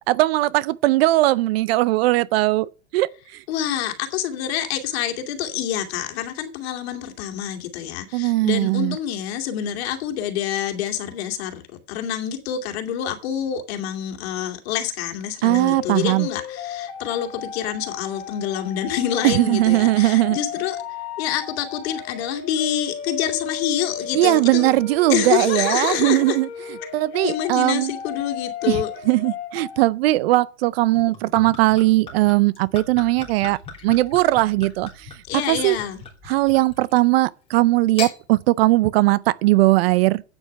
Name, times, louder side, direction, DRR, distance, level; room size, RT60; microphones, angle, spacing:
voice 1, 0.1-3.4 8.1-9.0 15.4-16.3 19.2-20.4 24.1-27.9 28.7-35.1 35.5-35.8 36.3-40.2, right 18 dB, 60° right, 0.6 m, -19 dB
voice 2, 3.5-11.6 11.9-20.8 21.2-24.7 25.1-26.4 26.8-26.9 27.2-28.9 35.3-36.0, left 10 dB, 60° left, 2.6 m, -27 dB
sound 1, 15.4-29.8, left 8 dB, 40° left, 2.4 m, -34 dB
Gurgling / Chink clink / Liquid, 31.0-37.1 37.8-38.2, left 5 dB, 15° left, 3.7 m, -38 dB
10.5 x 8.9 x 5.4 m
supercardioid pair, 145°, 35 cm